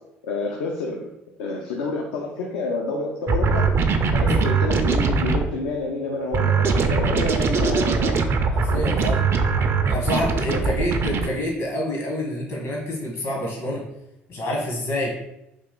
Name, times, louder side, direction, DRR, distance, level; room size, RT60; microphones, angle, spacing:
voice 1, 0.3-1.1 1.4-3.7 4.1-8.2 10.5-10.7, left 3 dB, 80° left, -1 dB, 0.5 m, -28 dB
sound 1, 3.3-5.5 6.3-11.3, right 4 dB, 45° right, 0.4 m, -21 dB
voice 2, 8.5-9.3 9.9-13.9 14.3-15.1, left 1 dB, 65° left, -1 dB, 1.3 m, -27 dB
3.3 x 2.4 x 3.7 m, 0.85 s
hypercardioid pair, 60°, 6 cm